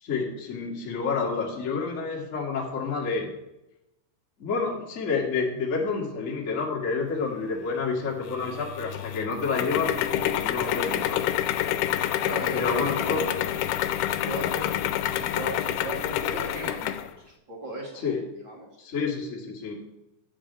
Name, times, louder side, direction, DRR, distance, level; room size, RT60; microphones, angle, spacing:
voice 1, 0.0-3.3 4.4-11.2 12.5-13.2 18.0-18.2 18.8-19.7, left 4 dB, 35° left, -3 dB, 1.2 m, -29 dB
sound 1, 8.3-17.1, left 12 dB, 80° left, 2.5 m, -28 dB
voice 2, 12.2-13.6 14.2-18.7, equal, 40° right, -2 dB, 1.8 m, -37 dB
10.0 x 5.0 x 8.0 m, 0.92 s
omnidirectional pair, 4.9 m